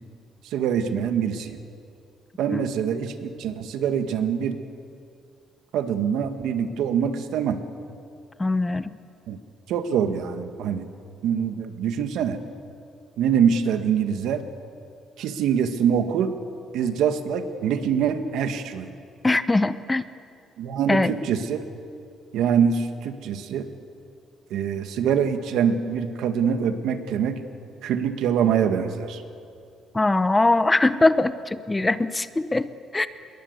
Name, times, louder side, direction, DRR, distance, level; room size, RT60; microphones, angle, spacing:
voice 1, 0.4-1.6 2.4-4.6 5.7-7.6 9.3-9.4 9.7-10.9 11.2-12.4 13.2-14.4 15.2-16.3 16.7-18.9 20.6-21.6 22.3-23.7 24.5-27.4 27.8-29.2, right 7 dB, 85° right, 8 dB, 1.9 m, -24 dB
voice 2, 8.4-8.9 19.2-20.1 20.9-21.2 29.9-33.1, left 2 dB, 15° left, 13 dB, 0.8 m, -22 dB
27.5 x 21.5 x 8.2 m, 2.5 s
cardioid pair, 125°, 0 cm